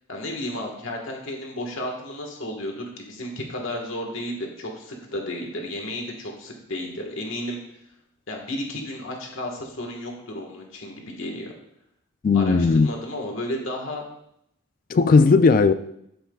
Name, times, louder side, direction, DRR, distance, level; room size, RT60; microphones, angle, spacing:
voice 1, 0.1-7.6 8.3-11.5 12.3-14.0, left 1 dB, 65° left, 1.5 m, -33 dB
voice 2, 12.2-12.9 14.9-15.7, left 4 dB, 40° left, 0.3 m, -16 dB
13.5 x 5.7 x 2.4 m
head